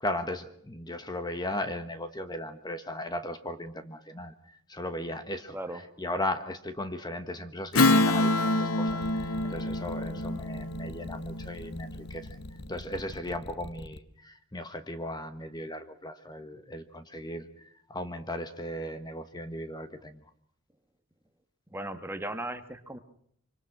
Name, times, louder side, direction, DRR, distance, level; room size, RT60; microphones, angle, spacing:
voice 1, 0.0-4.3 4.7-12.4 12.7-20.2, left 1 dB, 20° left, 9 dB, 1.3 m, -37 dB
Strum, 7.7-12.6, left 2 dB, 80° left, 1.2 m, -27 dB
sound 1, 8.9-14.0, left 2 dB, 55° left, 1.0 m, -44 dB
voice 2, 10.1-10.4 21.7-23.0, right 1 dB, 10° right, 7 dB, 1.5 m, -37 dB
25.5 x 25.5 x 6.1 m, 0.65 s
head